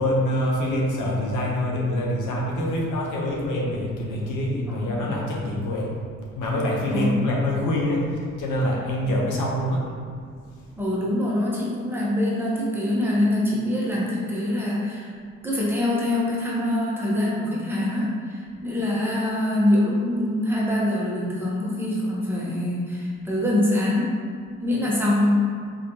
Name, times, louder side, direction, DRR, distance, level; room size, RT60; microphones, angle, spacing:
voice 1, 0.0-5.9 6.3-9.9, left 1 dB, 80° left, -2 dB, 0.8 m, -25 dB
voice 2, 4.8-5.2 6.9-7.2 9.0-9.1 10.8-15.1 15.4-24.2 24.6-25.5, left 1 dB, 5° right, -6 dB, 1.0 m, -24 dB
3.9 x 3.1 x 2.8 m, 2.1 s
cardioid pair, 90°, 30 cm